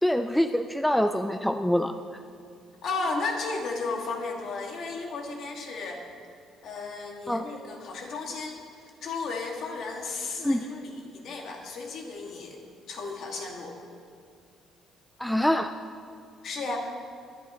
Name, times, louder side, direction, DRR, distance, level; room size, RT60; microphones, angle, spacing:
voice 1, 0.0-1.9 7.3-7.4 10.4-10.6 15.2-15.7, equal, 5° left, 8 dB, 0.3 m, -25 dB
voice 2, 2.8-6.0 6.6-8.6 9.0-12.6 12.9-13.8 16.4-16.8, left 3 dB, 55° left, 0 dB, 2.1 m, -34 dB
22.5 x 11.0 x 3.1 m, 2.3 s
cardioid pair, 150°, 0 cm